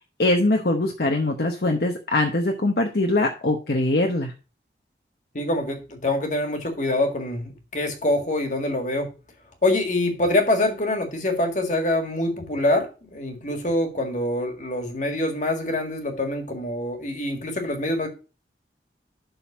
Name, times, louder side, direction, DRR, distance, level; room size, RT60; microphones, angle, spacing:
voice 1, 0.2-4.3, left 2 dB, 60° left, 3 dB, 0.9 m, -22 dB
voice 2, 5.3-9.1 9.6-18.1, left 1 dB, 45° left, 4 dB, 1.9 m, -25 dB
11.5 x 4.0 x 5.0 m, 0.33 s
head